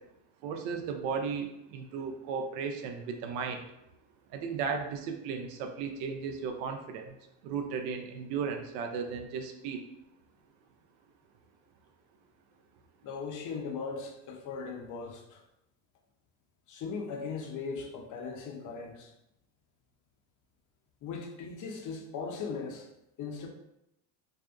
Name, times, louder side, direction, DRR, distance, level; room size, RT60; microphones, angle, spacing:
voice 1, 0.4-3.6 4.3-7.1 7.4-9.8, right 6 dB, 75° right, 4 dB, 0.5 m, -35 dB
voice 2, 13.0-15.4 16.7-19.1 21.0-22.9 23.2-23.5, left 5 dB, 40° left, 3 dB, 0.5 m, -38 dB
2.6 x 2.3 x 2.3 m, 0.85 s
supercardioid pair, 90°, 50 cm